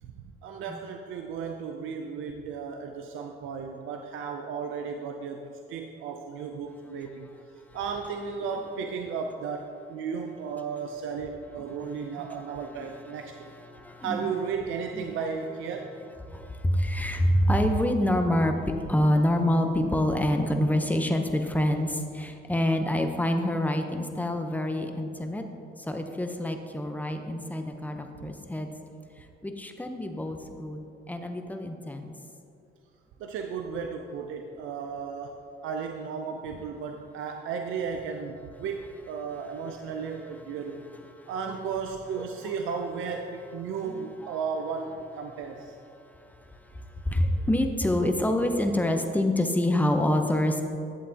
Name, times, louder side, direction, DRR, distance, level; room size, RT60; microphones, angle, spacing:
voice 1, 0.0-7.3 7.7-13.3 14.0-15.9 33.2-40.8 41.3-45.8, right 6 dB, 85° right, 4 dB, 0.5 m, -34 dB
voice 2, 13.7-14.2 15.0-15.1 16.3-18.6 18.9-25.4 25.8-28.7 29.4-32.1 41.5-41.6 43.8-44.1 47.0-50.6, left 1 dB, 10° left, 5 dB, 0.7 m, -26 dB
11.0 x 7.6 x 2.8 m, 2.6 s
cardioid pair, 90°, 20 cm